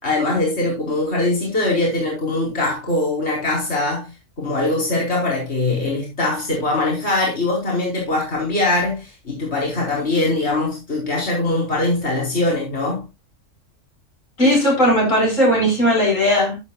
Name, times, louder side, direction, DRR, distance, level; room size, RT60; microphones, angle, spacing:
voice 1, 0.0-4.1 4.4-13.0, left 2 dB, 55° left, 4.9 m, -22 dB
voice 2, 14.4-16.6, equal, 85° left, 6.0 m, -17 dB
11.5 x 11.0 x 2.4 m
omnidirectional pair, 1.3 m